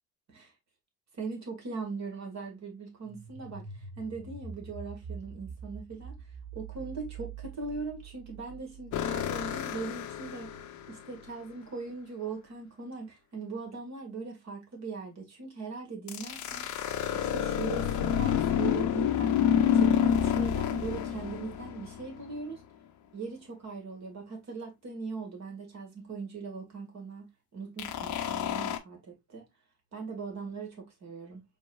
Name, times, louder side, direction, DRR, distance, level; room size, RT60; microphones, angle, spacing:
voice 1, 1.1-6.2 6.5-10.5 10.9-16.8 17.1-19.4 19.7-22.6 23.1-29.5 29.9-31.4, right 4 dB, 40° right, 1.9 m, -40 dB
sound 1, 3.0-11.7, right 6 dB, 70° right, 1.1 m, -46 dB
sound 2, 8.9-11.0 16.1-22.4 27.8-28.8, left 9 dB, 45° left, 0.7 m, -29 dB
4.5 x 3.3 x 2.4 m
hypercardioid pair, 60°, 40 cm